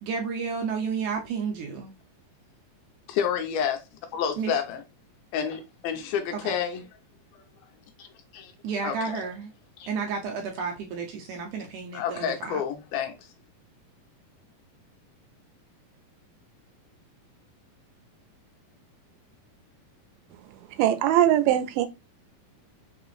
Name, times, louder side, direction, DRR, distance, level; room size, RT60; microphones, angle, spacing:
voice 1, 0.0-1.9 4.4-4.6 6.3-6.6 8.6-9.5 9.9-12.6, right 5 dB, 70° right, 2.0 m, -32 dB
voice 2, 3.1-3.8 4.1-4.8 5.3-6.8 7.3-7.4 8.0-8.1 8.3-8.5 8.8-9.2 9.8-9.9 11.9-13.1, left 8 dB, 85° left, 2.7 m, -29 dB
voice 3, 20.8-21.9, right 12 dB, 90° right, 2.5 m, -21 dB
5.9 x 3.0 x 2.4 m
omnidirectional pair, 4.2 m